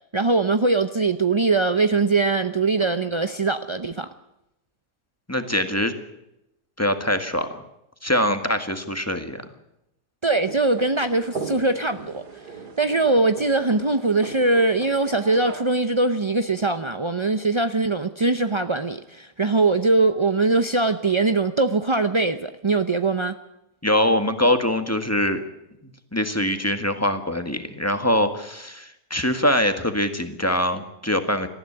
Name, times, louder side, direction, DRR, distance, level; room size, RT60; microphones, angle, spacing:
voice 1, 0.1-4.1 10.2-12.2 12.8-23.4, right 3 dB, 45° right, 9 dB, 0.3 m, -21 dB
voice 2, 5.3-5.9 6.8-7.6 8.0-9.4 23.8-25.4 26.1-31.5, left 1 dB, 10° left, 8 dB, 1.6 m, -23 dB
sound 1, 10.4-15.6, right 4 dB, 70° right, 2.9 m, -38 dB
19.0 x 14.5 x 10.0 m, 0.85 s
omnidirectional pair, 1.8 m